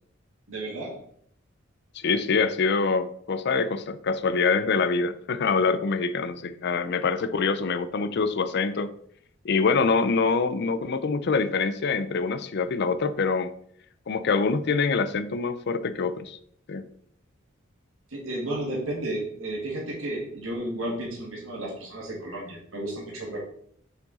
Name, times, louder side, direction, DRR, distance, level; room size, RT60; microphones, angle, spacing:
voice 1, 0.5-1.0 18.1-23.4, right 1 dB, 85° right, -4 dB, 2.2 m, -33 dB
voice 2, 1.9-9.0 9.4-13.5 14.1-16.4 16.7-16.9, left 4 dB, 55° left, 12 dB, 0.5 m, -25 dB
6.7 x 4.6 x 4.2 m, 0.66 s
head